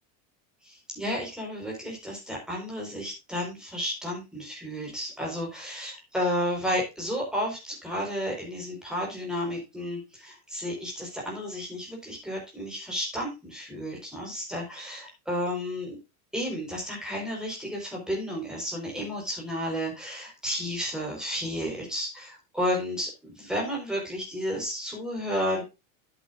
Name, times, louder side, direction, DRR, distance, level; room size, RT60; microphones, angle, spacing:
voice 1, 0.6-16.0 16.3-25.6, equal, ahead, -1 dB, 4.4 m, -32 dB
11.5 x 8.4 x 2.5 m, 0.26 s
supercardioid pair, 160°, 43 cm